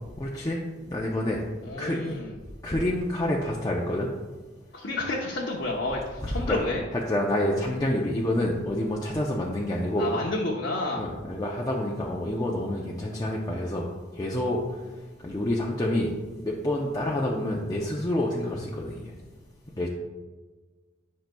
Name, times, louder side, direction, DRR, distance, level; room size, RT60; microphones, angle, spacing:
voice 1, 0.2-1.4 1.8-2.2 2.6-4.1 6.2-6.6 6.9-10.1 11.0-13.9 14.1-14.6 15.2-16.1 16.4-19.2 19.8-19.9, left 1 dB, 20° left, -3 dB, 0.6 m, -28 dB
voice 2, 1.6-2.3 4.7-6.8 10.0-11.0, left 2 dB, 65° left, -3 dB, 0.9 m, -30 dB
10.5 x 5.7 x 2.3 m, 1.3 s
head